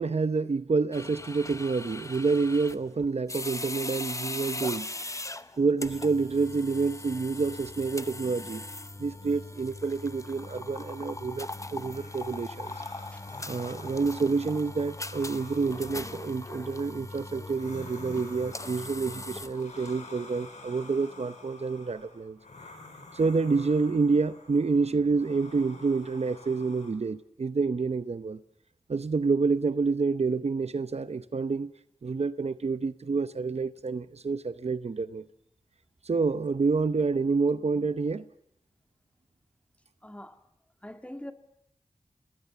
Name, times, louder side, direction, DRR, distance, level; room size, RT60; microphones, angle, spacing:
voice 1, 0.0-4.9 5.6-8.6 9.0-12.7 13.4-22.4 23.1-28.4 28.9-31.7 32.0-35.2 36.0-38.2, right 4 dB, 65° right, 0.8 m, -28 dB
sound 1, 0.9-20.0, left 2 dB, 25° left, 0.9 m, -40 dB
sound 2, 11.9-26.9, left 3 dB, 90° left, 4.1 m, -50 dB
voice 2, 40.0-40.4 40.8-41.3, left 1 dB, 10° left, 2.0 m, -42 dB
29.0 x 19.5 x 7.0 m
cardioid pair, 50°, 12 cm